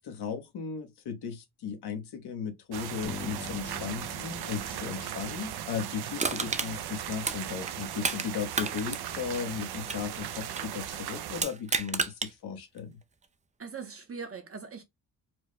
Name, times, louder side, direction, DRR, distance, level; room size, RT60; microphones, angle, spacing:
voice 1, 0.0-13.0, left 7 dB, 75° left, 1.1 m, -36 dB
sound 1, 2.7-11.4, right 10 dB, 70° right, 0.6 m, -38 dB
Bass guitar, 3.0-6.8, left 4 dB, 25° left, 0.9 m, -45 dB
Crushing, 6.2-8.3 8.5-10.8 11.3-12.3 12.8-12.9, right 4 dB, 20° right, 0.4 m, -32 dB
voice 2, 13.6-14.8, right 5 dB, 35° right, 0.8 m, -41 dB
4.6 x 2.1 x 3.1 m
wide cardioid pair, 140°, 39 cm